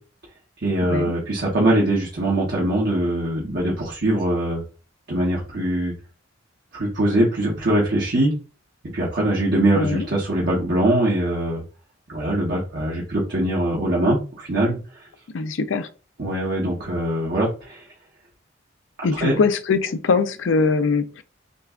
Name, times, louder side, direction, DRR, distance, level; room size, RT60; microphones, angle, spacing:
voice 1, 0.6-4.6 5.1-5.9 6.7-8.3 8.8-11.6 12.1-15.1 16.2-17.9 19.1-19.4, right 1 dB, 55° right, 1.1 m, -22 dB
voice 2, 9.7-10.1 15.3-15.9 19.0-21.2, left 4 dB, 65° left, 0.4 m, -22 dB
6.5 x 2.3 x 2.4 m
head